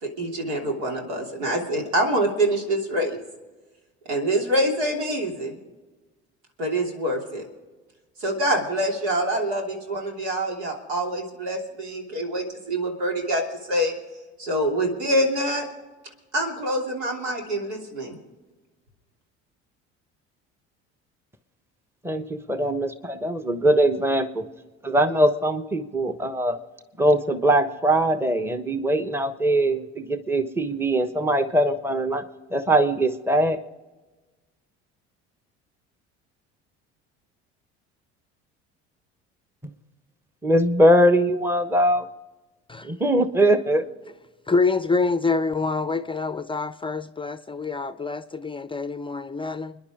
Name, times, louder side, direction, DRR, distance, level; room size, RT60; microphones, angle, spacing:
voice 1, 0.0-3.2 4.1-5.6 6.6-7.4 8.2-13.4 13.7-13.9 14.4-15.7 16.3-18.2, right 1 dB, 80° right, 1 dB, 3.1 m, -25 dB
voice 2, 22.0-24.5 24.9-25.6 25.9-26.6 27.0-32.2 32.5-33.6 40.4-42.1 42.8-43.8, right 1 dB, 5° right, 10 dB, 1.1 m, -21 dB
voice 3, 44.5-49.8, left 4 dB, 15° left, 12 dB, 0.6 m, -26 dB
30.0 x 10.5 x 3.7 m, 1.2 s
hypercardioid pair, 65°, 34 cm